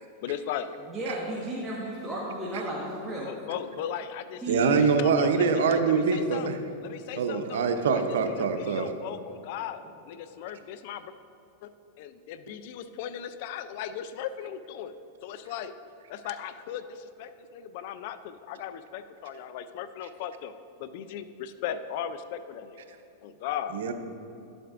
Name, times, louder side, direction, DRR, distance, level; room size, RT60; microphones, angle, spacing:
voice 1, 0.2-0.7 3.2-6.5 6.8-7.7 8.3-11.1 11.6-11.7 12.0-14.9 15.2-15.7 16.1-20.5 20.8-22.8 23.2-23.8, left 9 dB, 60° left, 12 dB, 0.4 m, -37 dB
voice 2, 0.9-3.3 4.4-4.7, right 1 dB, 5° right, -7 dB, 1.3 m, -34 dB
voice 3, 4.5-6.6 7.2-8.9 23.7-23.9, right 5 dB, 80° right, 6 dB, 0.7 m, -24 dB
11.0 x 7.8 x 2.5 m, 2.9 s
hypercardioid pair, 125°, 0 cm